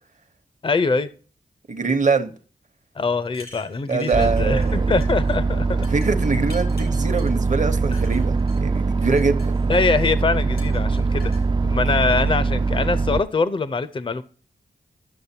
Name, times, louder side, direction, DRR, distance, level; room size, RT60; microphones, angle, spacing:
voice 1, 0.6-1.1 3.0-5.9 7.9-8.0 9.7-11.3 11.6-14.2, left 4 dB, 35° left, 13 dB, 0.5 m, -23 dB
voice 2, 1.7-2.3 3.9-4.9 5.9-9.5, right 4 dB, 50° right, 10 dB, 0.9 m, -23 dB
sound 1, 3.2-4.7 5.0-5.4 5.8-7.3 7.9-8.6 9.0-10.0 10.6-11.4, left 3 dB, 90° left, 2.3 m, -46 dB
sound 2, 4.1-13.2, right 4 dB, 30° right, 0.4 m, -22 dB
11.0 x 6.5 x 2.7 m, 0.40 s
cardioid pair, 50°, 16 cm